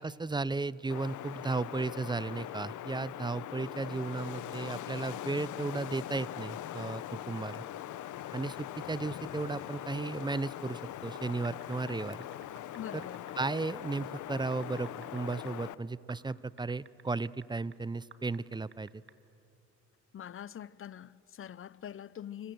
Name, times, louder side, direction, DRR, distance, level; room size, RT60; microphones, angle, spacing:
voice 1, 0.0-7.6 8.3-8.6 8.9-12.3 12.9-13.1 13.4-19.0, right 3 dB, 15° right, 0.6 m, -35 dB
Wind, 0.9-15.7, left 12 dB, 75° left, 0.9 m, -42 dB
sound 1, 11.1-15.5 16.1-17.8 18.1-19.1, right 6 dB, 40° right, 1.7 m, -54 dB
voice 2, 12.7-13.3 20.1-22.5, left 10 dB, 45° left, 0.7 m, -44 dB
27.0 x 25.5 x 7.9 m
cardioid pair, 90°, 30 cm